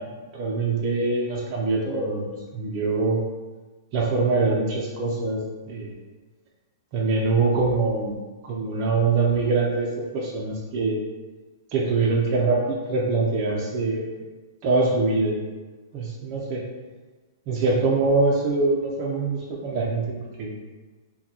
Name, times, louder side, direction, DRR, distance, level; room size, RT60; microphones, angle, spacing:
voice 1, 0.0-3.2 3.9-5.4 5.7-5.9 6.9-8.2 8.4-11.0 11.7-14.2 14.6-15.4 15.9-16.6 17.5-20.5, right 3 dB, 35° right, -4 dB, 0.5 m, -24 dB
3.7 x 2.2 x 2.8 m, 1.3 s
hypercardioid pair, 155°, 2 cm